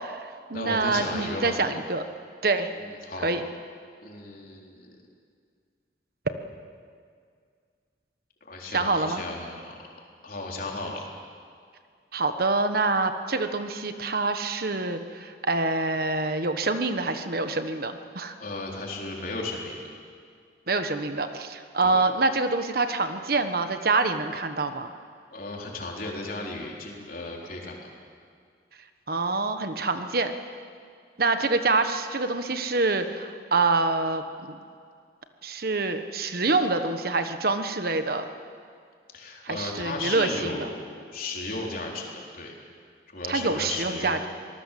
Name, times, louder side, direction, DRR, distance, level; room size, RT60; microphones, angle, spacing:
voice 1, 0.0-2.0 2.4-2.7 3.2-3.4 8.7-9.2 12.1-18.3 20.7-24.9 29.1-30.3 31.2-34.6 35.4-38.2 39.4-40.7 43.3-44.3, right 3 dB, 55° right, 8 dB, 1.3 m, -26 dB
voice 2, 0.5-1.6 2.8-3.3 4.0-5.0 8.5-9.7 10.2-11.0 18.4-19.8 21.8-22.0 25.3-27.8 39.1-42.5 43.1-44.2, left 2 dB, 50° left, -1 dB, 4.1 m, -35 dB
25.5 x 19.0 x 7.6 m, 2.1 s
head